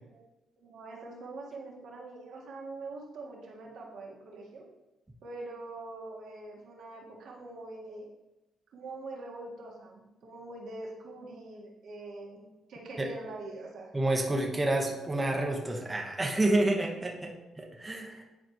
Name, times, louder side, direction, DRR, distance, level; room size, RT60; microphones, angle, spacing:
voice 1, 0.6-4.7 5.2-8.1 8.7-13.9 16.9-17.0, right 2 dB, 70° right, -2 dB, 1.7 m, -44 dB
voice 2, 13.9-18.2, right 1 dB, 15° right, 0 dB, 1.2 m, -29 dB
10.0 x 4.3 x 3.0 m, 0.99 s
cardioid pair, 90°, 0 cm